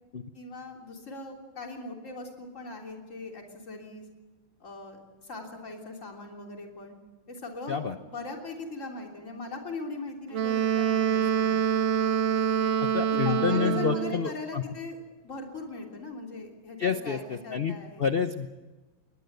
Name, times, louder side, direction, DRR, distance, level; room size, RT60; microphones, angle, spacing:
voice 1, 0.3-4.0 4.6-7.0 7.3-11.5 13.1-15.0 15.2-18.1, left 3 dB, 40° left, 1 dB, 3.6 m, -40 dB
Wind instrument woodwind instrument, 10.3-14.3, right 8 dB, 80° right, 2.1 m, -26 dB
voice 2, 12.8-14.6 16.8-18.5, left 6 dB, 60° left, 8 dB, 0.6 m, -29 dB
22.5 x 19.0 x 8.0 m, 1.2 s
omnidirectional pair, 2.2 m